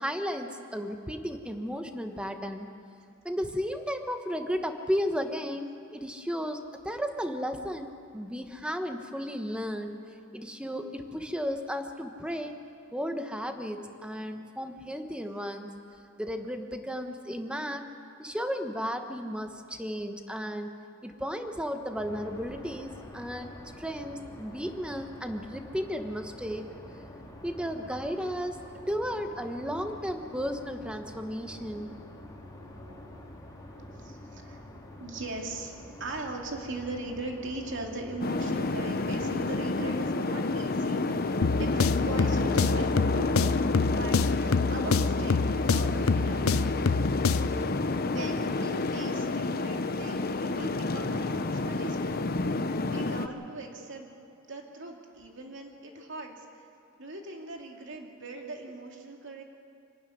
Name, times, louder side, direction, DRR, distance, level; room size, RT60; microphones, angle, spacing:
voice 1, 0.0-2.7 3.2-6.6 6.8-10.0 10.3-12.5 12.9-15.7 16.2-17.9 18.2-20.7 21.0-26.7 27.4-28.6 28.9-31.9, equal, 5° right, 6 dB, 1.2 m, -34 dB
sound 1, 21.9-40.4, left 1 dB, 20° left, 2.4 m, -47 dB
voice 2, 31.7-33.3 33.7-34.7 35.0-35.7 36.0-41.3 41.6-43.5 43.9-46.9 48.0-54.1 54.5-56.4 57.0-59.4, right 2 dB, 60° right, 1 dB, 2.6 m, -40 dB
sound 2, 38.2-53.3, left 3 dB, 45° left, 0.8 m, -29 dB
sound 3, 41.4-47.6, left 4 dB, 90° left, 0.6 m, -27 dB
26.0 x 12.5 x 9.4 m, 2.3 s
head